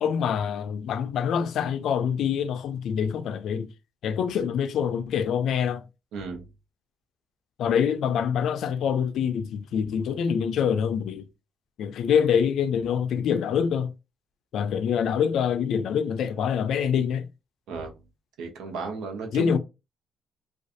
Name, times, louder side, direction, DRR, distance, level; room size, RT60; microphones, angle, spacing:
voice 1, 0.0-3.7 4.0-5.8 7.6-11.3 11.8-13.9 14.5-17.3 19.3-19.6, left 7 dB, 75° left, 0.3 m, -25 dB
voice 2, 6.1-6.5 17.7-17.9 18.4-19.6, right 4 dB, 85° right, 0.7 m, -34 dB
2.4 x 2.3 x 2.6 m
cardioid pair, 90°, 0 cm